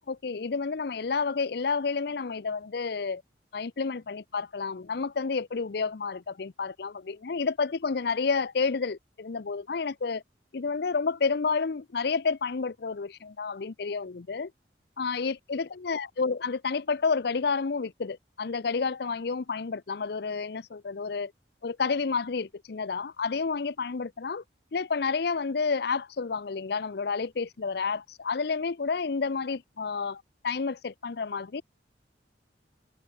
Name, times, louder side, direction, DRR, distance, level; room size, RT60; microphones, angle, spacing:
voice 1, 0.1-3.2 3.5-10.2 10.5-14.5 15.0-21.3 21.6-24.4 24.7-31.6, left 4 dB, 60° left, 0.6 m, -30 dB
head